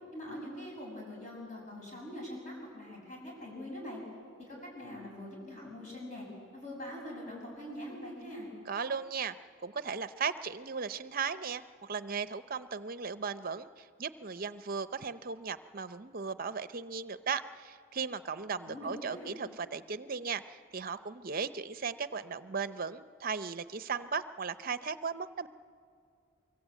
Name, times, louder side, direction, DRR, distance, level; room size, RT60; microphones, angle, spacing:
voice 1, 0.1-4.0 4.4-6.3 6.5-8.5 18.7-19.4, left 1 dB, 35° left, -2 dB, 6.9 m, -43 dB
voice 2, 8.7-9.3 9.6-25.5, right 5 dB, 45° right, 13 dB, 0.6 m, -37 dB
24.5 x 24.0 x 8.3 m, 2.3 s
head